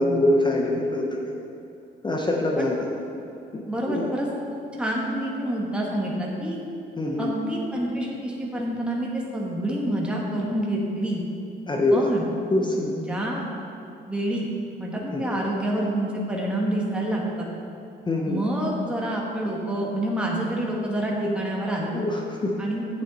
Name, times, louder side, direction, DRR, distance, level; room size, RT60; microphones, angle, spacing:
voice 1, 0.0-1.3 2.0-2.8 3.5-4.1 7.0-7.3 11.7-12.1 12.5-13.0 15.1-15.4 18.1-18.4 21.2-21.3 21.9-22.6, left 1 dB, 20° left, -1 dB, 0.8 m, -24 dB
voice 2, 3.7-4.3 4.7-6.6 7.2-11.2 11.9-12.2 12.9-13.4 14.1-14.5 14.8-17.5 18.3-21.9 22.6-22.9, right 1 dB, 5° right, -3 dB, 1.3 m, -27 dB
8.5 x 7.3 x 4.0 m, 2.8 s
cardioid pair, 90°, 20 cm